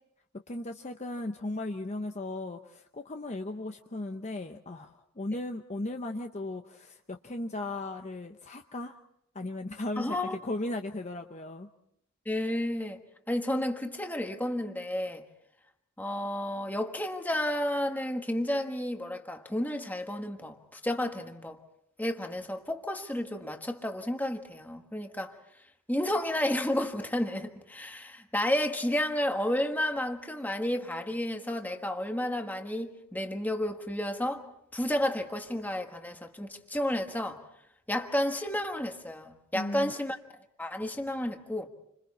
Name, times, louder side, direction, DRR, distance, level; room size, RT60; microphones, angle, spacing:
voice 1, 0.5-9.0 9.3-11.7 39.5-39.9, left 2 dB, 30° left, 0.8 m, -36 dB
voice 2, 10.0-10.4 12.2-13.0 13.3-15.3 16.0-21.6 22.0-25.4 25.9-34.5 34.7-37.4 37.9-40.2 40.6-41.7, left 1 dB, 10° left, 1.4 m, -31 dB
29.5 x 26.0 x 4.2 m
head